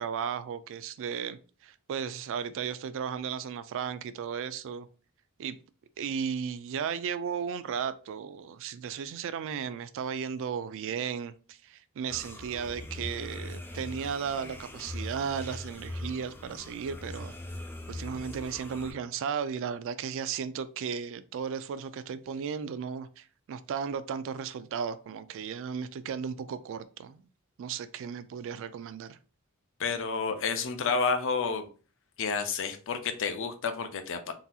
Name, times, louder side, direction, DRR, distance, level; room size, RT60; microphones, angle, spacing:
voice 1, 0.0-4.9 5.4-5.6 6.0-17.3 17.9-27.2 27.6-29.2, right 7 dB, 60° right, 0.3 m, -35 dB
sound 1, 12.1-18.9, left 1 dB, 10° left, 0.5 m, -41 dB
voice 2, 29.8-31.7 32.2-34.3, left 5 dB, 60° left, 0.5 m, -30 dB
3.8 x 2.7 x 2.3 m
head